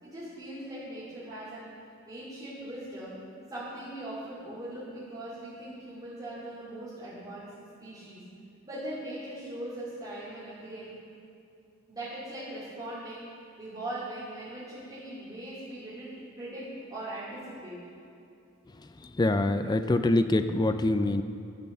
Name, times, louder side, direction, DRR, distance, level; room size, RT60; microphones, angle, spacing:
voice 1, 0.0-1.7 2.1-3.2 3.5-7.5 7.8-8.2 8.6-10.9 11.9-13.2 13.6-16.6 16.9-17.8, right 1 dB, 20° right, -13 dB, 3.0 m, -40 dB
voice 2, 19.0-21.2, left 2 dB, 20° left, 9 dB, 0.4 m, -25 dB
14.0 x 6.3 x 6.8 m, 2.6 s
head